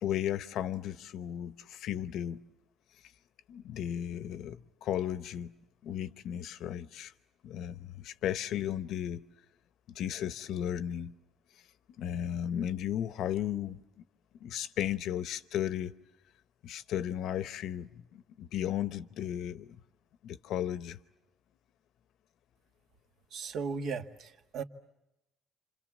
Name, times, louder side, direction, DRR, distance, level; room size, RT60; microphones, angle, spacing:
voice 1, 0.0-2.4 3.5-5.5 5.8-7.1 7.4-9.2 9.9-11.1 12.0-13.8 14.4-15.9 16.6-19.8 20.2-21.0, left 10 dB, 60° left, 0.9 m, -35 dB
voice 2, 23.3-24.6, right 5 dB, 55° right, 1.7 m, -36 dB
29.5 x 27.0 x 7.3 m
cardioid pair, 170°, 0 cm